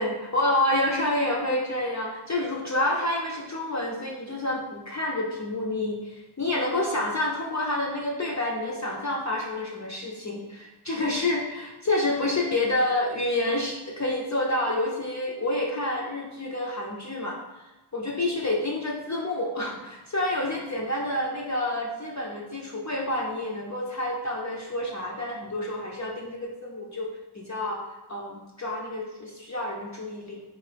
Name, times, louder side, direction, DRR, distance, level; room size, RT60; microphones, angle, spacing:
voice 1, 0.0-17.7 17.9-27.1 27.5-27.8 28.1-30.4, left 1 dB, 35° left, -3 dB, 0.5 m, -28 dB
3.7 x 2.7 x 3.3 m, 1.1 s
wide cardioid pair, 75°, 49 cm